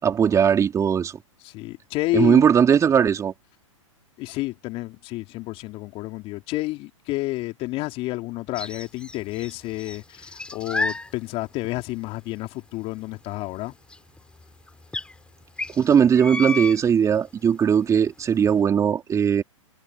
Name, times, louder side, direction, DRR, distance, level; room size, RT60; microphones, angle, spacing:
voice 1, 0.0-1.2 2.1-3.3 15.8-19.4, right 7 dB, 20° right, 3.8 m, -19 dB
voice 2, 1.4-2.4 4.2-13.7, left 20 dB, 35° left, 3.6 m, -30 dB
sound 1, 8.6-9.5 9.8-11.1 11.6-11.7 13.9-14.0 14.2-14.3 14.9-15.0 15.6-16.8, left 2 dB, 5° left, 4.4 m, -30 dB
hypercardioid pair, 115°, 17 cm